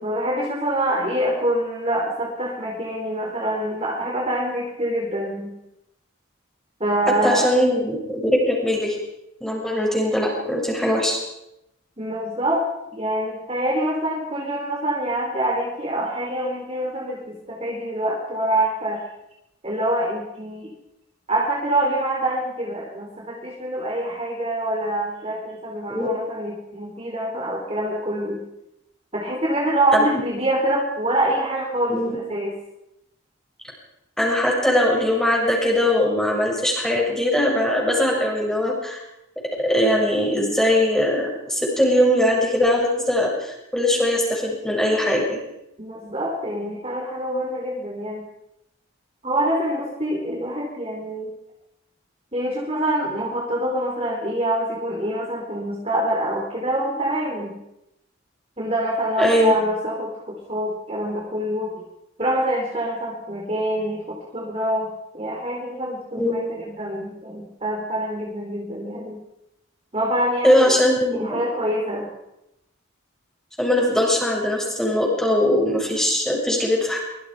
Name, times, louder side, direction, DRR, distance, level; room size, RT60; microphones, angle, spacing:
voice 1, 0.0-5.5 6.8-7.5 12.0-12.6 12.9-19.0 19.6-20.7 21.3-28.4 29.1-32.5 45.8-48.3 49.2-51.3 52.3-57.5 58.6-61.7 62.2-64.9 65.1-69.2 69.9-70.8 71.1-72.1, right 1 dB, 30° right, -2 dB, 4.4 m, -25 dB
voice 2, 7.2-9.0 9.4-11.2 25.9-26.1 29.9-30.1 31.9-32.2 34.2-39.0 39.6-45.4 59.2-59.5 66.2-66.4 70.4-71.4 73.6-77.0, left 1 dB, 5° left, -2 dB, 7.1 m, -21 dB
25.0 x 24.0 x 5.2 m, 0.87 s
head